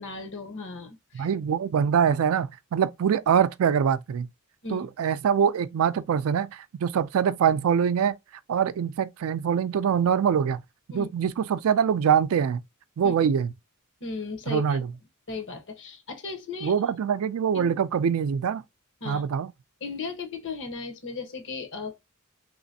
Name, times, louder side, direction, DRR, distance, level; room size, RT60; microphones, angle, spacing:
voice 1, 0.0-1.3 4.6-4.9 10.9-11.1 13.0-13.1 14.0-14.8 15.3-16.7 17.5-17.8 19.0-19.2 19.8-22.0, left 4 dB, 60° left, 1.1 m, -36 dB
voice 2, 1.1-4.3 4.7-8.1 8.5-10.6 10.9-12.6 13.0-13.5 14.5-14.9 16.6-18.6 19.1-19.5, right 7 dB, 70° right, 0.3 m, -24 dB
3.2 x 3.0 x 2.7 m
head